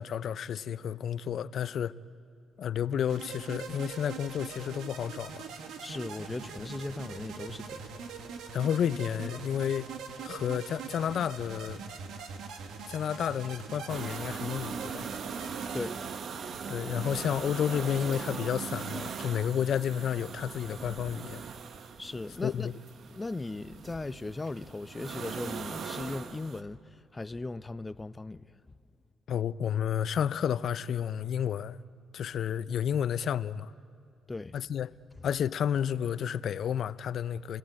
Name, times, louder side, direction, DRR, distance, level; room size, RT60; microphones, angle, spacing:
voice 1, 0.0-1.9 2.6-5.5 8.5-9.9 10.2-11.8 12.9-15.1 16.7-21.4 22.4-22.7 29.3-31.8 32.1-33.7 34.5-35.0 35.2-37.6, left 9 dB, 65° left, 0.6 m, -31 dB
sound 1, 3.1-15.9, right 5 dB, 85° right, 1.8 m, -42 dB
voice 2, 5.8-7.9 15.7-16.0 22.0-22.7 23.0-28.5 34.3-34.6, left 2 dB, 20° left, 0.6 m, -38 dB
sound 2, 13.9-26.6, right 6 dB, 60° right, 1.1 m, -40 dB
28.0 x 19.5 x 8.8 m
cardioid pair, 90°, 0 cm